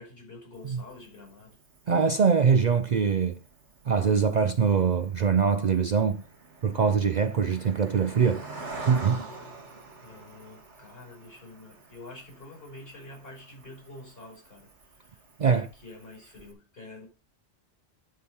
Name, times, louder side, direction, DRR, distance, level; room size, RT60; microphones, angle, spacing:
voice 1, 0.0-1.6 10.0-17.1, left 2 dB, 55° left, 5.9 m, -47 dB
Cricket, 0.5-16.5, right 3 dB, 85° right, 2.3 m, -47 dB
voice 2, 1.9-3.4 3.9-6.2 6.6-8.5 8.9-9.3 15.4-15.7, right 6 dB, 50° right, 0.6 m, -23 dB
11.5 x 5.0 x 5.5 m
omnidirectional pair, 1.2 m